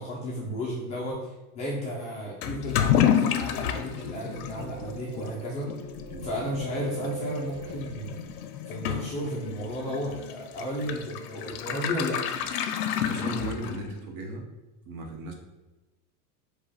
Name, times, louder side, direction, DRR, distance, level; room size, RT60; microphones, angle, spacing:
voice 1, 0.0-5.7 6.2-8.2 8.7-12.2, equal, 20° left, -5 dB, 0.3 m, -33 dB
Toilet flush / Liquid, 2.4-14.0, left 9 dB, 85° left, 0.6 m, -30 dB
sound 1, 3.6-8.2, right 7 dB, 40° right, 0.6 m, -42 dB
voice 2, 13.1-14.4 14.8-15.3, right 2 dB, 70° right, 2 dB, 1.1 m, -36 dB
4.8 x 2.3 x 4.1 m, 1.1 s
supercardioid pair, 150°, 44 cm